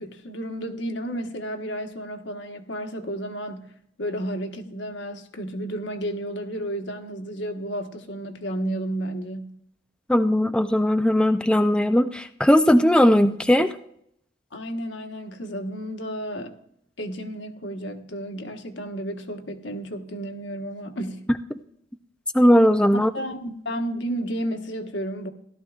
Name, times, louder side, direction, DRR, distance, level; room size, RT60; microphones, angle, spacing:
voice 1, 0.0-3.7 4.0-9.6 14.5-16.6 17.0-21.3 22.9-25.3, right 1 dB, 70° left, 5 dB, 1.3 m, -32 dB
voice 2, 10.1-13.7 22.3-23.1, equal, 5° left, 8 dB, 0.4 m, -18 dB
16.5 x 12.5 x 2.4 m, 0.71 s
head